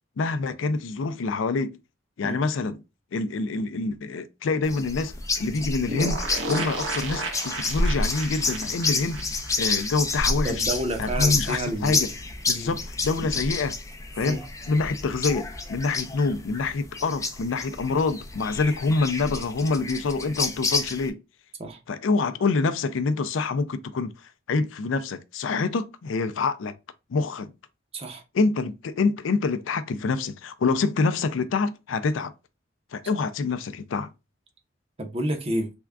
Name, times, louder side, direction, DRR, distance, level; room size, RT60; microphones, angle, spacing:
voice 1, 0.2-1.8 2.2-2.8 3.1-9.2 9.6-10.6 11.0-12.1 12.5-13.8 14.2-21.2 21.9-24.1 24.5-26.7 27.1-27.5 28.3-32.3 32.9-34.1, left 4 dB, 85° left, 0.4 m, -26 dB
sound 1, 4.6-21.1, left 3 dB, 15° left, 0.5 m, -29 dB
sound 2, 5.9-10.5 10.8-10.9 11.1-11.2, right 2 dB, 85° right, 0.8 m, -33 dB
voice 2, 10.4-12.0 12.6-12.7 14.2-14.4 21.6-21.8 27.9-28.2 35.0-35.7, right 1 dB, 30° right, 0.7 m, -30 dB
3.5 x 2.3 x 3.5 m
head